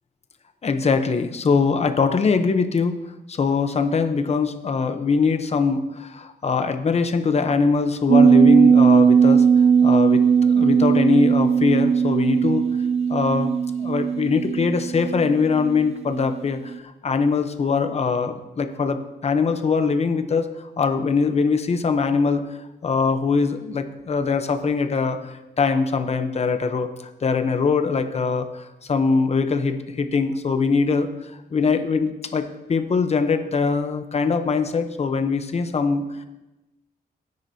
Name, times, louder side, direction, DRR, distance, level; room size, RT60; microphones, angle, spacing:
voice 1, 0.6-2.9 3.3-12.7 13.1-13.5 13.8-22.4 22.8-36.0, left 4 dB, 40° left, 8 dB, 0.8 m, -22 dB
sound 1, 8.1-16.4 16.7-16.8, right 6 dB, 40° right, 0.4 m, -18 dB
17.5 x 9.5 x 2.8 m, 1.0 s
wide cardioid pair, 155°, 17 cm